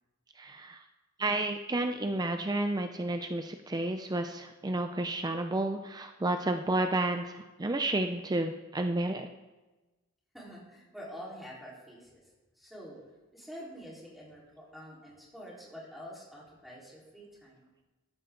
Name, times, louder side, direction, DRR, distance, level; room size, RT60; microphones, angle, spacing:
voice 1, 0.4-0.8 1.2-9.3, right 2 dB, 20° right, 6 dB, 0.5 m, -31 dB
voice 2, 10.3-12.2 12.6-13.0 13.3-17.7, equal, ahead, -5 dB, 4.2 m, -47 dB
13.5 x 13.5 x 3.9 m, 1.1 s
head